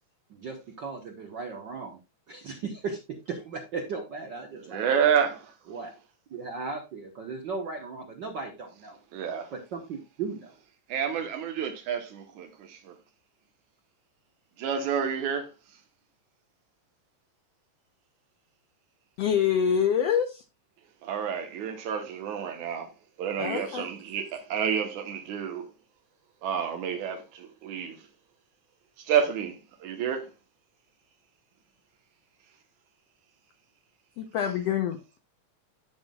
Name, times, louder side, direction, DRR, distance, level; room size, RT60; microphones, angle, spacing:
voice 1, 0.3-2.0 2.3-5.1 5.7-5.9 6.3-9.0 9.5-10.5, right 4 dB, 60° right, 1.2 m, -36 dB
voice 2, 4.6-5.4 9.1-9.5 10.9-13.0 14.6-15.5 21.0-22.9 23.2-25.7 26.4-28.1 29.0-30.3, right 8 dB, 85° right, 2.5 m, -29 dB
voice 3, 19.2-20.4 23.4-23.9 34.2-35.2, left 8 dB, 70° left, 1.7 m, -26 dB
12.5 x 5.8 x 2.3 m
omnidirectional pair, 3.3 m